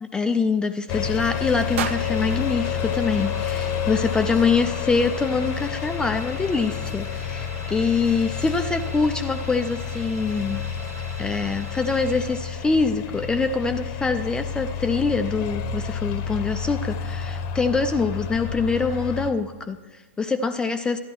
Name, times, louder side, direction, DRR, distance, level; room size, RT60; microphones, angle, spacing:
voice 1, 0.1-10.6 11.2-21.0, left 4 dB, 10° left, 8 dB, 0.3 m, -24 dB
sound 1, 0.9-19.3, left 7 dB, 40° left, 0.8 m, -30 dB
sound 2, 1.1-13.0, right 2 dB, 85° right, 1.1 m, -44 dB
sound 3, 1.7-3.9, right 9 dB, 60° right, 0.5 m, -35 dB
14.0 x 11.0 x 3.0 m, 1.4 s
hypercardioid pair, 105°, 8 cm